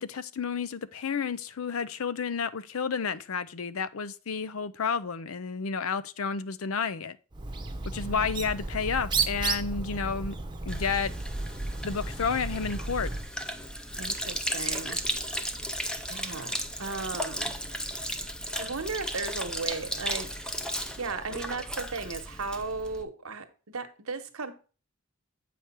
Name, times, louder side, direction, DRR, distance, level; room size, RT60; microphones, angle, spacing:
voice 1, 0.0-7.2 7.9-10.3 10.7-11.1 11.8-13.1, left 6 dB, 75° left, 0.6 m, -31 dB
Bird, 7.3-13.3, right 3 dB, 20° right, 0.8 m, -33 dB
Sink (filling or washing), 10.7-23.0, equal, 5° left, 0.6 m, -35 dB
voice 2, 14.0-15.0 16.0-17.5 18.5-20.4 21.0-23.5 23.7-24.5, right 4 dB, 90° right, 1.1 m, -36 dB
7.8 x 5.0 x 4.4 m
head